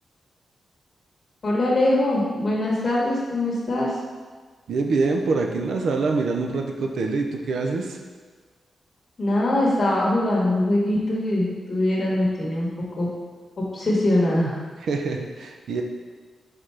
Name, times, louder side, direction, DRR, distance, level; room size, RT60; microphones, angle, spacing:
voice 1, 1.4-3.9 9.2-12.7 13.0-13.1 13.7-14.6, left 1 dB, 40° left, -5 dB, 1.6 m, -22 dB
voice 2, 4.7-8.0 14.8-15.8, right 3 dB, 80° right, 2 dB, 0.6 m, -25 dB
4.6 x 4.4 x 4.9 m, 1.4 s
wide cardioid pair, 150°, 0 cm